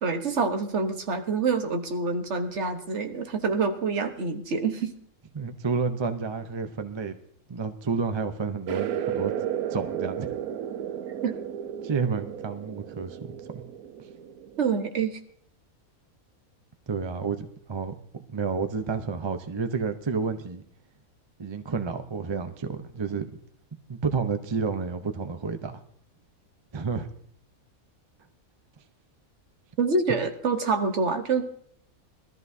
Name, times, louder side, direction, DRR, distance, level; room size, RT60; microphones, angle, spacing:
voice 1, 0.0-4.9 11.2-11.4 14.6-15.2 29.8-31.5, right 4 dB, 55° right, 6 dB, 1.3 m, -26 dB
voice 2, 5.3-7.1 7.5-9.3 9.7-10.3 11.8-13.6 16.9-17.9 18.3-20.6 21.4-23.3 23.9-25.8 26.7-27.1, right 5 dB, 30° right, 8 dB, 0.5 m, -30 dB
sound 1, 8.7-14.8, right 10 dB, 90° right, 1.2 m, -33 dB
21.0 x 13.5 x 2.7 m, 0.63 s
omnidirectional pair, 1.5 m